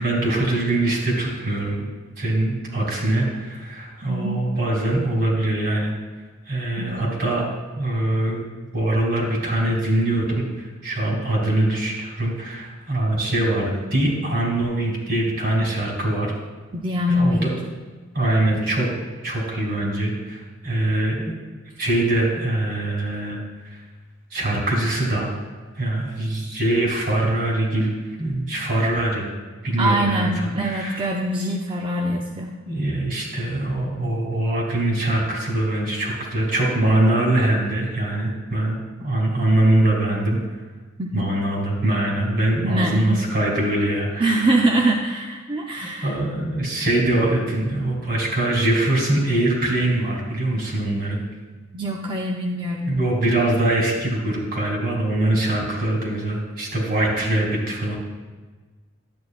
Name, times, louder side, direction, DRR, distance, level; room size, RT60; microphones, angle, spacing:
voice 1, 0.0-1.9 2.2-5.9 6.5-7.5 7.8-16.3 17.1-17.5 18.1-18.9 19.2-21.2 21.8-23.8 24.3-25.3 25.8-27.9 28.2-29.3 29.6-31.0 32.7-40.6 41.1-44.6 46.0-51.2 52.9-58.0, right 1 dB, 55° right, -3 dB, 2.3 m, -23 dB
voice 2, 4.1-4.4 6.8-7.1 16.7-17.5 29.8-32.5 41.0-41.3 42.6-43.2 44.2-46.1 51.7-53.0, right 1 dB, 25° right, 0 dB, 0.5 m, -23 dB
11.0 x 8.4 x 2.4 m, 1.3 s
head